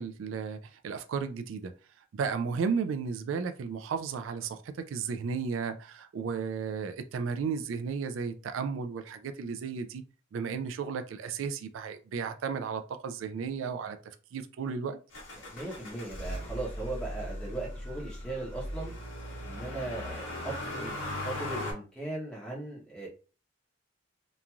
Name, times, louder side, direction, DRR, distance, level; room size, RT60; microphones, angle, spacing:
voice 1, 0.0-1.7 2.1-10.0 10.3-14.0 14.3-15.0, right 5 dB, 75° right, 0.3 m, -34 dB
Motor vehicle (road), 15.1-21.7, left 1 dB, 80° left, 1.1 m, -38 dB
voice 2, 15.5-18.9 19.4-23.1, right 2 dB, 5° left, 0.8 m, -38 dB
3.0 x 2.5 x 2.3 m
head